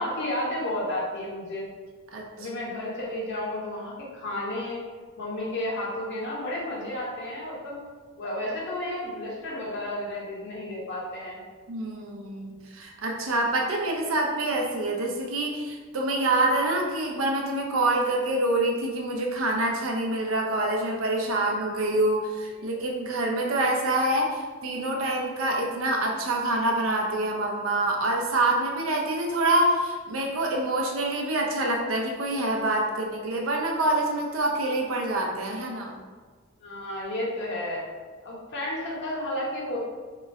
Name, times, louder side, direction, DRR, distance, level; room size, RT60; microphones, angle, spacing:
voice 1, 0.0-1.6 2.4-4.8 5.2-7.8 8.2-11.4 22.6-22.8 23.5-23.6 36.6-37.8 38.2-39.8, left 1 dB, 60° left, -4 dB, 0.9 m, -32 dB
voice 2, 11.7-35.9, right 2 dB, 70° right, 0 dB, 0.6 m, -26 dB
3.0 x 2.4 x 4.1 m, 1.5 s
head